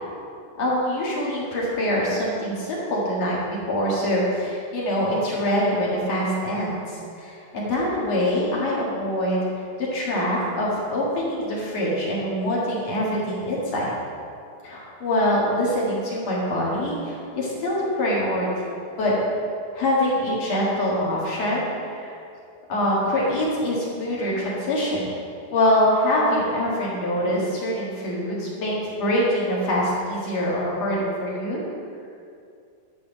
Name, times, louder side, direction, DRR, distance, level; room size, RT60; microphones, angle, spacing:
voice 1, 0.6-9.5 9.8-13.9 14.6-18.5 19.0-19.2 19.7-22.1 22.7-25.1 25.5-31.6, left 1 dB, 50° left, -5 dB, 2.6 m, -24 dB
10.5 x 4.8 x 7.1 m, 2.5 s
omnidirectional pair, 4.3 m